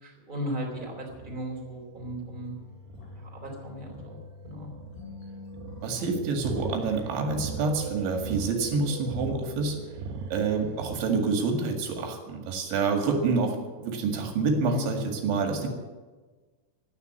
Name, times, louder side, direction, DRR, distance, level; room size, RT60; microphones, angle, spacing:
voice 1, 0.0-2.5 3.1-4.2 4.4-4.7 14.7-15.0, equal, 10° right, -1 dB, 2.9 m, -36 dB
sound 1, 0.6-11.0, right 5 dB, 85° right, 2.3 m, -40 dB
sound 2, 2.2-7.4, left 4 dB, 80° left, 7.3 m, -46 dB
voice 2, 5.8-9.8 10.3-15.7, right 4 dB, 70° right, 3 dB, 4.2 m, -27 dB
14.0 x 9.8 x 9.5 m, 1.3 s
omnidirectional pair, 5.8 m